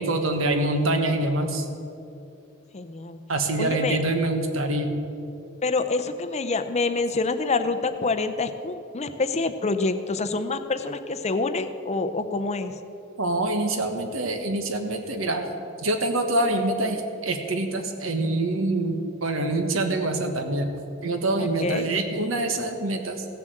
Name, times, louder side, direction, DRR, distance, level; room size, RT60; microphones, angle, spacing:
voice 1, 0.0-1.7 3.3-4.9 13.2-15.5 15.8-20.7 21.0-23.3, right 2 dB, 70° right, 5 dB, 1.4 m, -25 dB
voice 2, 2.7-3.2 3.6-4.0 5.6-12.8 21.4-21.9, left 3 dB, 35° left, 10 dB, 0.6 m, -27 dB
16.0 x 7.3 x 7.8 m, 2.7 s
head